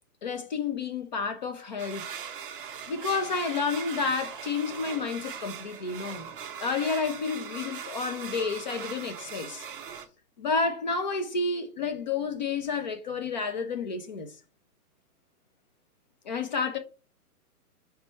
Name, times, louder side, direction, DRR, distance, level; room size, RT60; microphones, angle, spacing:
voice 1, 0.2-2.1 2.9-6.3 6.6-9.7 10.4-14.3 16.2-16.8, left 4 dB, 30° left, 0.5 m, -30 dB
sound 1, 1.8-10.1, right 7 dB, 35° right, 0.6 m, -40 dB
5.3 x 3.3 x 3.1 m
hypercardioid pair, 155°, 46 cm